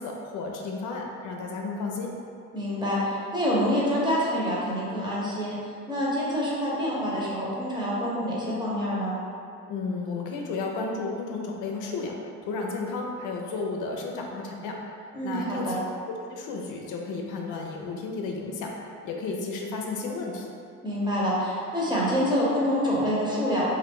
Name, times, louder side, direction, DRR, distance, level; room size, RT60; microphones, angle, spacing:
voice 1, 0.0-2.1 9.7-14.8 15.2-15.8 16.1-18.7 19.0-20.5, left 3 dB, 85° left, 0 dB, 0.5 m, -33 dB
voice 2, 2.5-5.6 5.9-9.1 15.1-15.8 20.8-23.6, equal, 15° right, -7 dB, 0.9 m, -26 dB
2.6 x 2.5 x 3.5 m, 2.4 s
cardioid pair, 90°, 30 cm